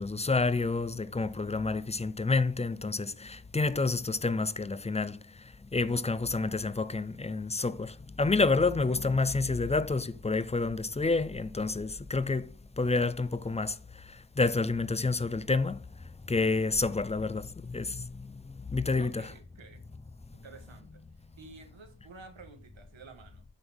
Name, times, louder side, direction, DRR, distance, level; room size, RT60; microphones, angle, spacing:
voice 1, 0.0-5.2 5.7-15.8 16.3-19.3, left 3 dB, 15° left, 0.3 m, -29 dB
voice 2, 19.0-19.8 20.3-23.4, right 4 dB, 90° right, 1.6 m, -51 dB
9.0 x 6.1 x 3.5 m
wide cardioid pair, 115°, 45 cm